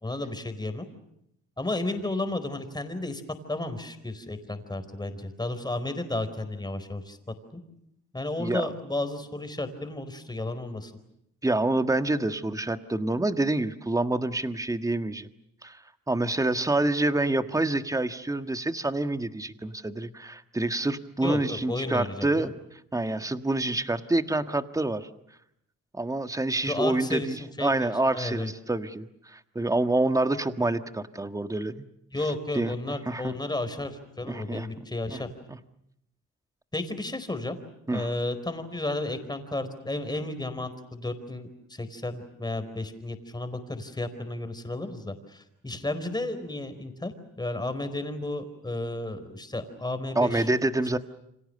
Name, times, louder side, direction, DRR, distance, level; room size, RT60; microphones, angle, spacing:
voice 1, 0.0-0.9 1.6-3.2 3.5-7.2 7.5-7.6 8.1-10.9 21.2-22.5 26.6-28.5 32.1-35.3 36.7-37.5 37.9-50.5, left 2 dB, 15° left, 10 dB, 4.4 m, -33 dB
voice 2, 11.4-15.3 15.6-25.1 25.9-31.7 32.5-33.3 34.3-35.2 35.5-35.6 37.9-38.1 50.1-51.0, right 2 dB, 10° right, 9 dB, 1.5 m, -27 dB
29.5 x 25.5 x 6.7 m, 0.79 s
cardioid pair, 90°, 30 cm